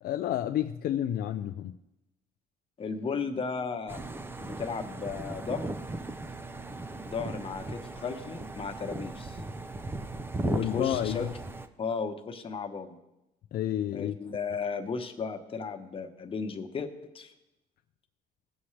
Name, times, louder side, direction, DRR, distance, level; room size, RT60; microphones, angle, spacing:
voice 1, 0.0-1.7 10.4-11.3 13.5-14.1, left 11 dB, 60° left, 0.5 m, -30 dB
voice 2, 2.8-4.0 4.4-5.7 7.1-9.4 10.4-11.3 11.8-13.0 13.9-17.3, left 5 dB, 35° left, 1.1 m, -35 dB
sound 1, 3.9-11.7, right 2 dB, 15° right, 0.6 m, -37 dB
17.5 x 7.1 x 3.3 m
cardioid pair, 110°, 17 cm